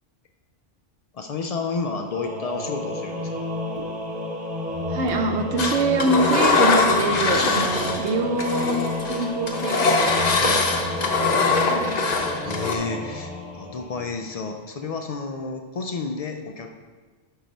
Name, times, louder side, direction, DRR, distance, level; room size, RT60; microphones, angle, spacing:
voice 1, 1.1-3.5 10.3-10.6 12.4-16.7, left 4 dB, 70° left, 4 dB, 0.3 m, -31 dB
Singing / Musical instrument, 2.0-14.4, left 1 dB, 5° right, 1.2 m, -31 dB
sound 1, 3.8-3.9 5.1-5.3 6.4-6.6 7.8-8.0, right 1 dB, 30° right, 0.8 m, -39 dB
voice 2, 4.9-8.8 9.0-10.1 10.7-12.0, right 2 dB, 70° right, 5 dB, 0.9 m, -25 dB
Engine, 5.6-8.1 8.4-12.7, left 3 dB, 40° left, 0.7 m, -22 dB
5.6 x 4.6 x 5.1 m, 1.4 s
omnidirectional pair, 1.2 m